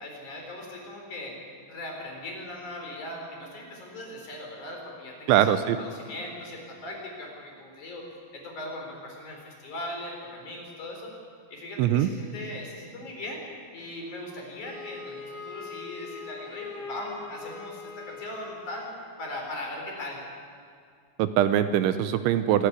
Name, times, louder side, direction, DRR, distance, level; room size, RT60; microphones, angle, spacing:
voice 1, 0.0-11.1 11.5-13.4 13.7-18.9 19.2-20.2, left 1 dB, 40° left, 1 dB, 5.2 m, -39 dB
voice 2, 5.3-5.8 11.8-12.1 21.2-22.7, right 11 dB, 80° right, 11 dB, 2.9 m, -22 dB
Wind instrument woodwind instrument, 14.6-19.1, left 5 dB, 80° left, 5.5 m, -41 dB
25.5 x 13.5 x 9.7 m, 2.2 s
omnidirectional pair, 5.8 m